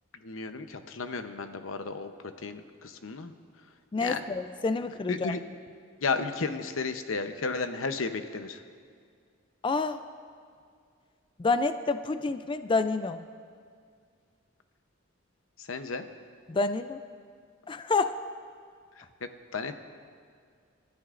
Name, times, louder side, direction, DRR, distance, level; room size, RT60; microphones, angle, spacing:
voice 1, 0.2-2.1 2.4-3.3 4.0-4.2 5.1-5.4 6.0-8.6 15.7-16.0 19.5-19.8, left 4 dB, 90° left, 8 dB, 0.8 m, -33 dB
voice 2, 3.9-5.3 9.6-10.0 11.4-13.2 16.5-17.0 17.7-18.2, left 3 dB, 25° left, 11 dB, 0.4 m, -28 dB
30.0 x 13.5 x 2.5 m, 2.2 s
head